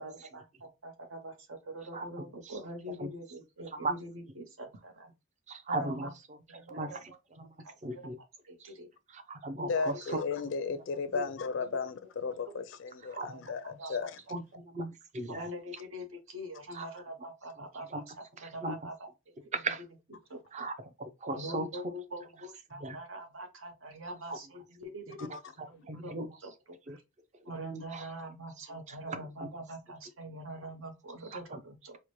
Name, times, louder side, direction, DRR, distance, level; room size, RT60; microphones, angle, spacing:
voice 1, 0.0-5.1 5.7-6.1 6.5-7.2 7.6-8.1 8.5-8.9 9.6-9.9 11.1-11.3 13.1-13.4 13.8-13.9 15.3-19.1 19.5-19.7 20.3-20.7 21.3-25.3 25.7-26.5 26.9-27.0 27.4-32.0, equal, 75° right, 0.9 m, -44 dB
voice 2, 5.5-6.1 6.7-6.9 7.4-7.5 7.8-8.2 9.3-9.9 13.1-13.3 14.3-14.4 14.7-15.4 16.8-16.9 17.9-18.0 18.6-18.8 19.6-19.8 20.5-20.7 21.0-21.7 22.8-23.0 25.9-26.3 26.9-27.0 27.9-28.0 29.1-29.2, right 2 dB, 35° right, 0.5 m, -35 dB
voice 3, 9.7-14.2 25.2-25.3, left 5 dB, 65° left, 0.4 m, -34 dB
4.5 x 2.1 x 3.0 m
head